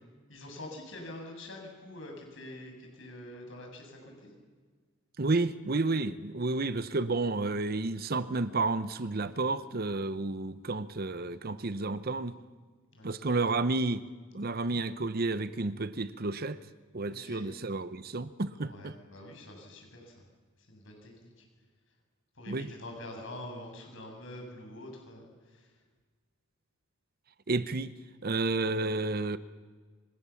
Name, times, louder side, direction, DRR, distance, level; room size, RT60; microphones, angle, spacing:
voice 1, 0.3-4.3 12.9-13.1 17.1-17.5 18.7-20.3 20.6-21.5 22.3-25.7, left 1 dB, 60° left, 7.4 m, -46 dB
voice 2, 5.2-12.4 13.0-14.0 14.3-16.6 16.9-18.9 22.5-22.7 27.5-27.9 28.2-29.4, right 3 dB, 45° right, 0.8 m, -31 dB
27.0 x 25.0 x 7.2 m
head